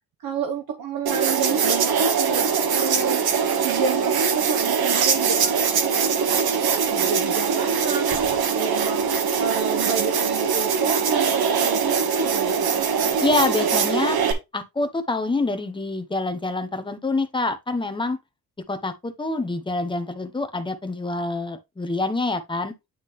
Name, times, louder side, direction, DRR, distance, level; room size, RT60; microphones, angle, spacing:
voice 1, 0.2-3.2 3.6-9.1 9.4-12.8, right 5 dB, 70° right, 1.1 m, -30 dB
sound 1, 1.1-14.3, right 6 dB, 85° right, 1.4 m, -22 dB
voice 2, 13.2-14.2 14.5-18.2 18.7-22.7, left 2 dB, 15° left, 1.0 m, -26 dB
9.6 x 3.8 x 3.2 m
wide cardioid pair, 155°, 36 cm